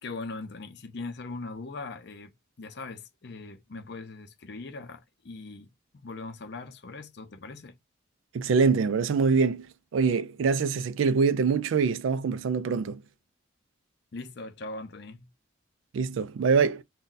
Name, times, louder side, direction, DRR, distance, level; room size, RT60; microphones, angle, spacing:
voice 1, 0.0-2.3 2.6-7.8 14.1-15.3, left 3 dB, 55° left, 0.6 m, -40 dB
voice 2, 8.3-9.7 9.9-13.0 15.9-16.8, right 5 dB, 75° right, 0.3 m, -24 dB
2.6 x 2.2 x 3.8 m
head